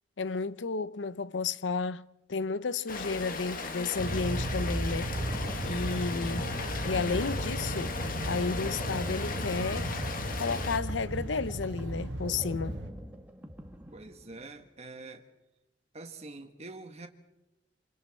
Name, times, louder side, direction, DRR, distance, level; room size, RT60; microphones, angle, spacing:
voice 1, 0.2-5.2 5.6-6.5 6.9-8.0 8.2-9.9 10.4-12.8, left 4 dB, 75° left, 0.7 m, -32 dB
Rain, 2.9-10.8, left 3 dB, 50° left, 1.9 m, -37 dB
sound 1, 4.0-12.9, right 1 dB, 65° right, 1.8 m, -35 dB
sound 2, 4.1-14.7, equal, 10° right, 1.8 m, -47 dB
voice 2, 6.1-6.7 13.9-15.3 15.9-17.1, right 2 dB, 35° right, 1.7 m, -45 dB
28.0 x 26.5 x 4.3 m
head